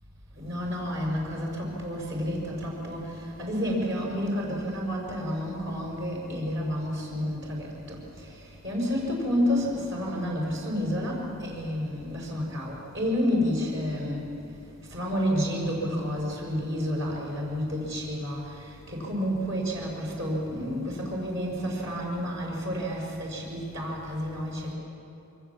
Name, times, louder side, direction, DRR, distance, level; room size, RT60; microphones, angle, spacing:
voice 1, 0.3-14.3 14.9-24.7, equal, 60° right, -2 dB, 6.0 m, -30 dB
27.5 x 25.0 x 7.4 m, 2.8 s
head